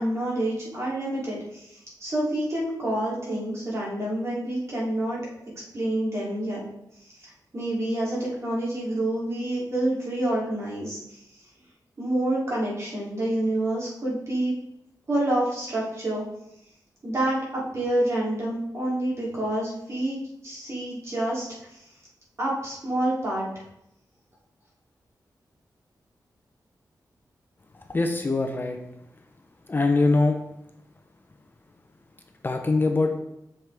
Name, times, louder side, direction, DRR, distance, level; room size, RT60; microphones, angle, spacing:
voice 1, 0.0-5.2 5.7-6.6 7.2-11.2 12.0-14.5 15.1-16.2 17.0-21.8 22.4-23.5, right 1 dB, 40° right, -6 dB, 3.1 m, -28 dB
voice 2, 27.7-28.8 29.7-30.4 32.4-33.2, left 3 dB, 30° left, 4 dB, 0.7 m, -23 dB
7.7 x 6.5 x 3.5 m, 0.82 s
wide cardioid pair, 125°, 7 cm